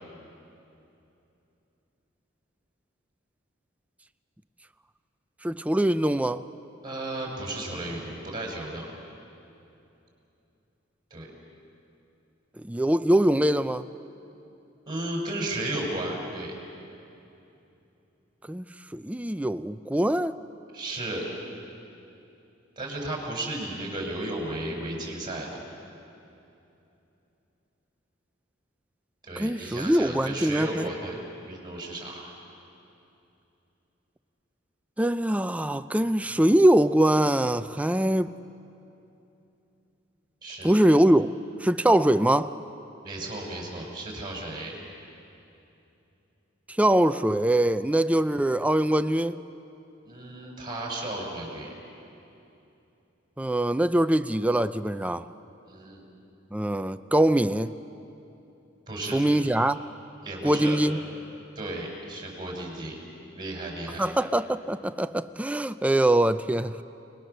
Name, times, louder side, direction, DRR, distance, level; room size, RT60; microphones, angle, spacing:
voice 1, 5.4-6.4 12.6-13.8 18.5-18.6 18.9-20.4 29.4-30.9 35.0-38.3 40.6-41.3 41.6-42.5 46.8-49.4 53.4-55.3 56.5-57.7 59.1-59.8 60.4-61.0 64.0-66.7, right 1 dB, 5° right, 11 dB, 0.4 m, -23 dB
voice 2, 6.8-8.8 11.1-11.3 14.9-16.6 20.7-21.3 22.8-25.6 29.2-31.2 31.5-32.3 40.4-40.8 43.0-44.7 50.0-51.7 55.6-56.0 58.9-59.2 60.2-60.8 61.6-63.0 63.3-64.1, right 1 dB, 25° right, -1 dB, 5.5 m, -34 dB
30.0 x 20.5 x 6.8 m, 2.8 s
head